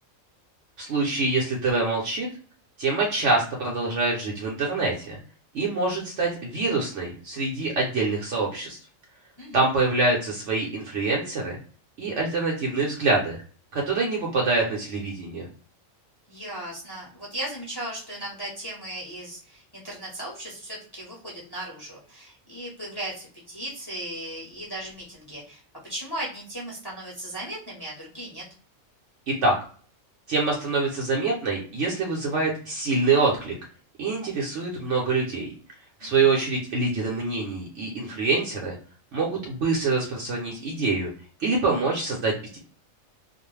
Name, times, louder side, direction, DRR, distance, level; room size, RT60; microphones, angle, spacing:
voice 1, 0.8-2.3 2.8-5.2 5.5-8.8 9.5-11.6 12.0-13.4 13.7-15.5 29.3-29.5 30.3-33.6 34.0-35.5 36.0-38.8 39.1-41.1 41.4-42.6, right 3 dB, 65° right, -2 dB, 0.9 m, -25 dB
voice 2, 16.3-25.6 25.9-28.4 36.0-36.3, right 1 dB, 20° left, -4 dB, 0.7 m, -37 dB
2.4 x 2.0 x 3.1 m, 0.42 s
omnidirectional pair, 1.4 m